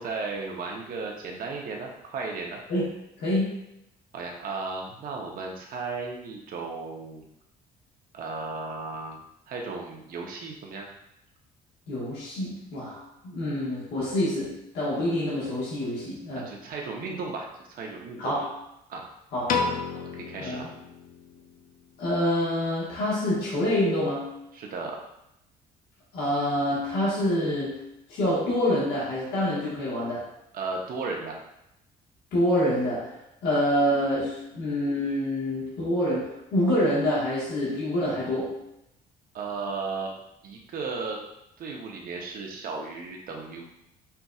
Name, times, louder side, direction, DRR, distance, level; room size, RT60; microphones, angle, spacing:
voice 1, 0.0-2.6 4.1-7.3 8.1-9.2 9.5-10.9 16.3-18.3 18.9-19.0 19.9-20.7 24.5-25.0 30.5-31.3 39.3-40.1 40.4-41.2 41.6-43.6, right 4 dB, 55° right, 0 dB, 0.9 m, -35 dB
voice 2, 3.2-3.6 11.9-16.5 18.2-18.5 19.3-19.5 20.4-20.7 22.0-24.3 26.1-27.8 28.1-30.3 32.3-33.1 33.4-38.6, left 1 dB, 75° left, -7 dB, 1.4 m, -26 dB
Piano, 19.5-21.8, left 5 dB, 55° left, 0.5 m, -31 dB
5.6 x 2.6 x 2.4 m, 0.83 s
cardioid pair, 110°, 17 cm